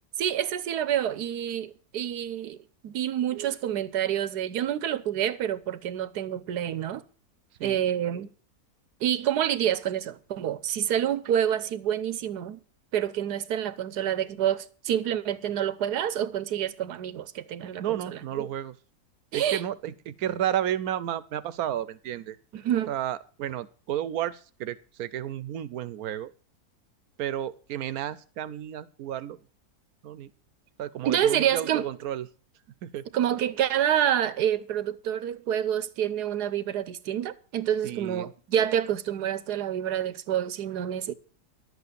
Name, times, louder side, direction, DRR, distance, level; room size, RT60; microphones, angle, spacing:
voice 1, 0.2-2.6 2.8-7.0 7.6-8.3 9.0-12.6 12.9-18.5 19.3-19.6 22.5-22.9 31.0-31.9 33.1-41.1, right 10 dB, 85° right, 1.4 m, -28 dB
voice 2, 17.8-18.8 19.3-22.4 22.9-26.3 27.2-29.4 30.0-30.3 30.8-32.3 32.8-33.0 37.8-38.3, right 11 dB, 70° right, 1.2 m, -32 dB
12.0 x 8.2 x 6.8 m
omnidirectional pair, 1.7 m